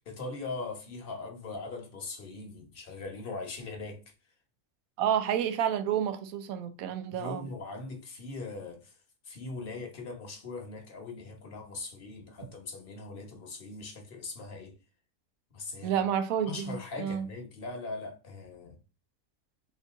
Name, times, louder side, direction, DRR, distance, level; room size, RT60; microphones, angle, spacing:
voice 1, 0.1-4.0 7.1-8.9 9.2-14.8 15.5-16.0 16.4-18.8, left 3 dB, 45° left, 1.0 m, -40 dB
voice 2, 5.0-7.5 15.8-17.3, right 9 dB, 75° right, 1.0 m, -30 dB
3.7 x 2.6 x 3.5 m
omnidirectional pair, 1.5 m